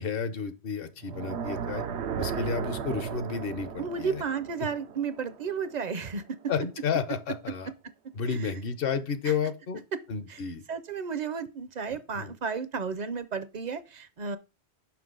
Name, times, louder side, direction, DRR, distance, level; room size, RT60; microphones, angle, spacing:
voice 1, 0.0-1.8 2.2-4.2 6.5-7.7 8.1-9.8 10.1-10.6 12.1-12.3, left 6 dB, 60° left, 0.9 m, -31 dB
sound 1, 1.0-6.1, right 7 dB, 90° right, 1.0 m, -36 dB
voice 2, 3.8-6.4 8.3-8.5 9.3-9.4 10.3-10.4 10.7-14.4, right 5 dB, 50° right, 0.6 m, -33 dB
6.0 x 5.6 x 3.8 m
omnidirectional pair, 1.1 m